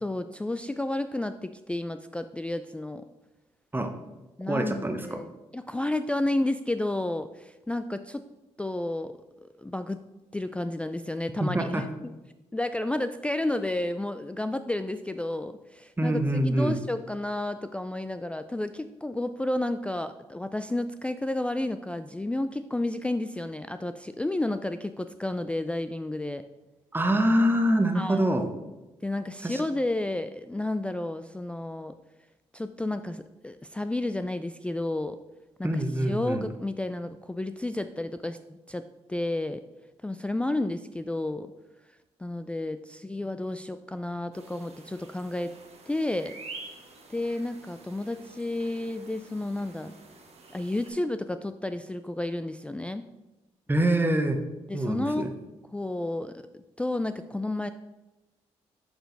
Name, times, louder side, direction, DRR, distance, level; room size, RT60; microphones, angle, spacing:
voice 1, 0.0-3.0 4.4-8.2 8.6-10.0 10.3-11.8 12.5-26.4 27.9-28.3 29.0-31.9 32.5-35.2 35.6-38.4 38.7-39.6 40.0-41.5 42.2-45.5 45.9-46.4 47.1-49.9 50.5-53.0 54.7-55.3 55.7-57.7, left 1 dB, 10° left, 9 dB, 0.3 m, -31 dB
voice 2, 4.5-5.2 11.4-11.8 16.0-16.8 26.9-28.5 29.4-29.6 35.6-36.5 53.7-54.4 54.7-55.3, right 1 dB, 15° right, 6 dB, 0.9 m, -25 dB
sound 1, 44.3-50.9, right 3 dB, 55° right, 1.5 m, -48 dB
6.6 x 4.5 x 4.0 m, 1.0 s
supercardioid pair, 50°, 13 cm